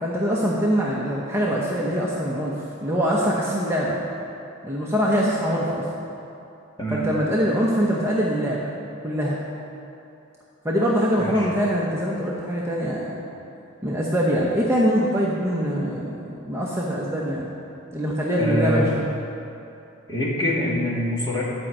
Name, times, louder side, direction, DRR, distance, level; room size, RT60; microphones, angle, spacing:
voice 1, 0.0-4.0 4.6-5.8 6.9-8.7 9.0-9.4 10.6-13.2 13.8-17.5 17.9-19.1, equal, 15° right, -5 dB, 0.9 m, -23 dB
voice 2, 11.2-11.5 18.4-18.8 20.1-21.4, equal, 20° left, -5 dB, 2.0 m, -24 dB
11.5 x 5.5 x 7.5 m, 2.8 s
head